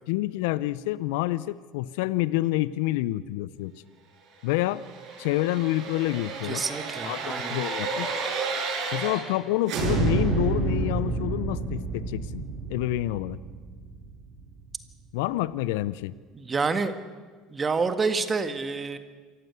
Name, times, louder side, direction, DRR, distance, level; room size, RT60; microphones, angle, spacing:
voice 1, 0.1-3.7 4.4-4.8 5.2-6.6 7.0-7.2 7.5-8.1 8.9-12.4 12.7-13.4 15.1-16.2, left 16 dB, 75° left, 18 dB, 0.6 m, -28 dB
sound 1, 4.7-9.4 9.7-14.5 14.9-15.0, right 4 dB, 60° right, 6.1 m, -30 dB
voice 2, 6.5-7.6 16.3-16.9 17.5-19.0, right 4 dB, 30° right, 9 dB, 1.8 m, -28 dB
26.5 x 15.0 x 8.2 m, 1.5 s
hypercardioid pair, 75°, 0 cm